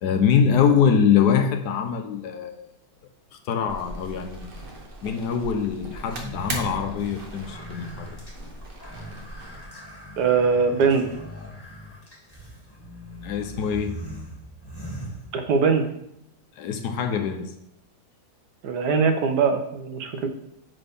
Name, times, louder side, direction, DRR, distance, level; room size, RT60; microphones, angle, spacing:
voice 1, 0.0-2.6 3.5-4.5 5.0-8.2 13.2-14.0 16.6-17.5, left 7 dB, 85° left, 6 dB, 1.4 m, -23 dB
sound 1, 3.7-9.6, right 2 dB, 40° right, 1.1 m, -39 dB
sound 2, 6.1-15.8, right 1 dB, 15° left, 2.2 m, -40 dB
voice 2, 10.2-11.1 15.3-15.8 18.6-20.3, right 5 dB, 85° right, 6 dB, 1.5 m, -21 dB
9.1 x 4.1 x 3.5 m, 0.77 s
omnidirectional pair, 1.7 m